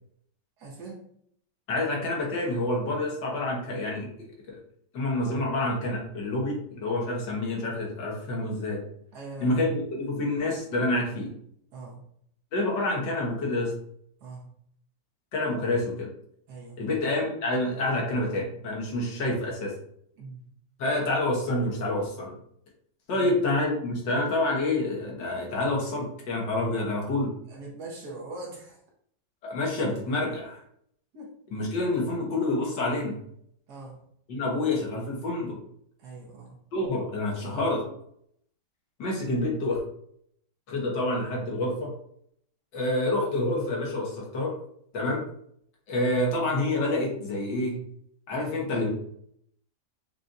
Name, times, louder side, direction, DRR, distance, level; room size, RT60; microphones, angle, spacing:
voice 1, 0.6-1.0 9.1-9.7 11.7-12.0 14.2-14.5 16.5-16.9 20.2-20.4 23.1-23.3 27.5-28.8 31.1-31.3 33.7-34.0 36.0-36.6, right 2 dB, 65° right, -3 dB, 1.6 m, -42 dB
voice 2, 1.7-4.1 4.5-4.6 4.9-8.8 9.4-11.3 12.5-13.7 15.3-16.1 16.8-19.7 20.8-22.3 23.1-27.3 29.4-30.6 31.5-33.2 34.3-35.6 36.7-37.8 39.0-39.8 40.7-41.9 42.7-44.5 44.9-45.2 45.9-47.8 48.3-48.9, left 2 dB, 80° left, -2 dB, 1.8 m, -28 dB
5.5 x 2.4 x 2.5 m, 0.69 s
omnidirectional pair, 1.9 m